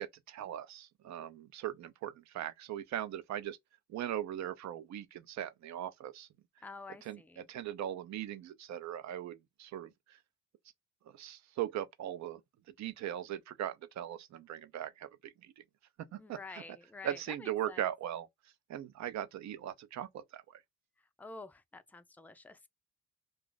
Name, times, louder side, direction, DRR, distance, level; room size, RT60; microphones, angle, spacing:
voice 1, 0.0-3.6 3.9-6.3 7.0-10.2 11.1-12.4 12.8-15.5 16.1-16.6 17.0-18.3 18.7-20.6, right 11 dB, 65° right, 0.6 m, -39 dB
voice 2, 6.6-7.5 16.1-17.8 21.2-22.7, left 3 dB, 5° left, 0.3 m, -49 dB
2.4 x 2.4 x 3.7 m
cardioid pair, 90°, 30 cm